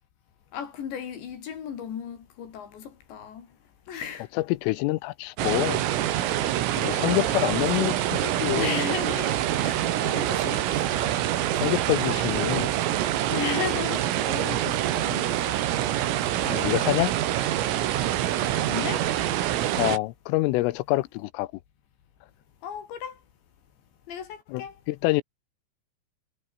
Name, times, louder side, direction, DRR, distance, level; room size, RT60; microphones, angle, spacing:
voice 1, 0.5-3.5 3.9-4.3 7.1-7.4 7.7-7.9 8.5-11.2 13.3-15.6 18.4-19.1 22.6-23.2 24.1-24.8, left 8 dB, 60° left, 5.2 m, -35 dB
voice 2, 4.3-5.8 6.7-8.8 11.6-12.7 16.4-17.1 19.7-21.5 24.5-25.2, left 19 dB, 85° left, 3.4 m, -26 dB
sound 1, 5.4-20.0, right 12 dB, 80° right, 4.7 m, -26 dB
omnidirectional pair, 5.9 m